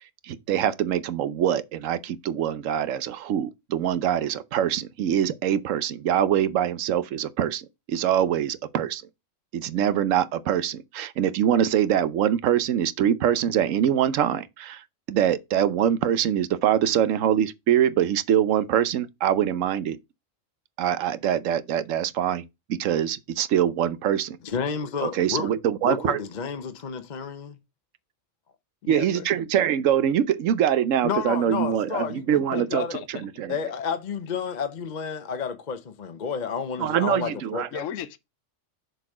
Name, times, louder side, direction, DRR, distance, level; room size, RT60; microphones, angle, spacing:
voice 1, 0.2-9.0 9.5-14.8 15.1-20.0 20.8-24.4 25.0-26.2 28.9-33.6 36.8-37.7, right 10 dB, 80° right, 1.0 m, -24 dB
voice 2, 24.4-25.5 25.8-27.6 31.0-33.0 33.5-37.7, left 6 dB, 40° left, 0.8 m, -31 dB
voice 3, 28.8-29.3 32.5-33.3 37.7-38.2, left 10 dB, 80° left, 1.0 m, -35 dB
6.7 x 4.1 x 4.9 m
omnidirectional pair, 1.3 m